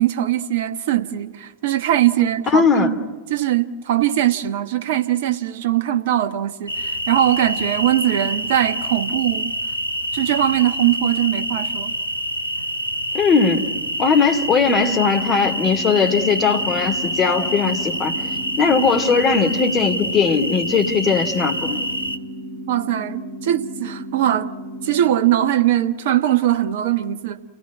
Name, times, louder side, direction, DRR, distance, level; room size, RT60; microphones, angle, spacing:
voice 1, 0.0-9.5 10.1-11.9 22.7-24.5 24.8-27.5, right 12 dB, 55° right, 1.1 m, -21 dB
voice 2, 2.5-2.9 13.1-13.7 14.0-18.2 18.6-21.8, left 5 dB, 25° left, 2.6 m, -19 dB
sound 1, 6.7-22.2, right 1 dB, 85° left, 1.1 m, -26 dB
sound 2, 15.1-25.1, equal, 25° right, 3.9 m, -35 dB
29.5 x 17.5 x 9.6 m
figure-of-eight pair, 90°, 0 cm